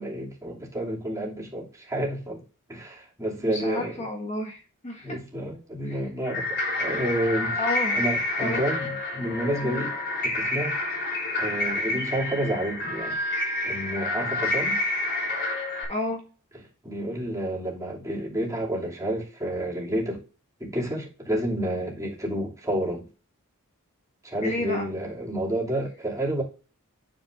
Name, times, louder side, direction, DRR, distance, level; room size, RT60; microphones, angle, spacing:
voice 1, 0.0-2.4 2.7-4.0 5.0-7.6 8.0-9.9 10.2-10.8 11.4-13.2 13.6-14.8 16.8-20.2 20.6-23.1 24.2-26.4, right 1 dB, 15° right, 2.7 m, -30 dB
voice 2, 3.4-5.2 5.8-6.0 7.6-8.0 8.4-8.6 9.6-9.9 15.9-16.2 24.4-24.9, left 1 dB, 30° left, 1.6 m, -31 dB
sound 1, 6.3-15.9, left 2 dB, 55° left, 3.6 m, -28 dB
9.4 x 7.2 x 2.5 m
head